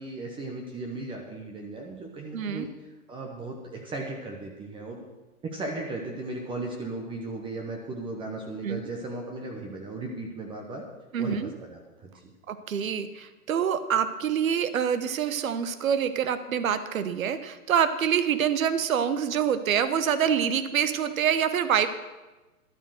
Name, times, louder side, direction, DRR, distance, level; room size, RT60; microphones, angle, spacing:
voice 1, 0.0-2.7 3.1-5.1 5.4-10.8 11.2-12.3, right 2 dB, 10° right, 0 dB, 0.9 m, -36 dB
voice 2, 2.3-2.7 8.6-8.8 11.1-11.5 12.5-21.9, right 8 dB, 60° right, 11 dB, 1.1 m, -26 dB
12.0 x 8.6 x 6.4 m, 1.1 s
hypercardioid pair, 130°, 45 cm